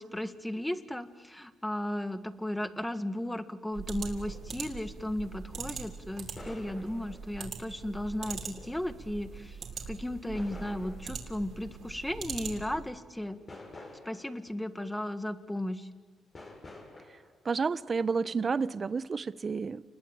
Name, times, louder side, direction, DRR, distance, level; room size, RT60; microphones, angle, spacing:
voice 1, 0.0-9.6 9.9-13.4 14.0-15.9, left 1 dB, 5° left, 11 dB, 1.7 m, -35 dB
sound 1, 2.4-2.5 2.7-2.8 4.2-4.4 6.4-7.5 8.5-9.0 10.3-11.4 12.5-12.6 13.0-14.6 15.2-15.3 16.3-17.4 18.2-19.0, left 2 dB, 35° left, 6.2 m, -49 dB
sound 2, 3.7-12.9, right 6 dB, 60° right, 4.5 m, -42 dB
voice 2, 17.4-19.8, right 5 dB, 35° right, 17 dB, 0.8 m, -30 dB
29.5 x 21.0 x 8.9 m, 1.4 s
cardioid pair, 90°, 0 cm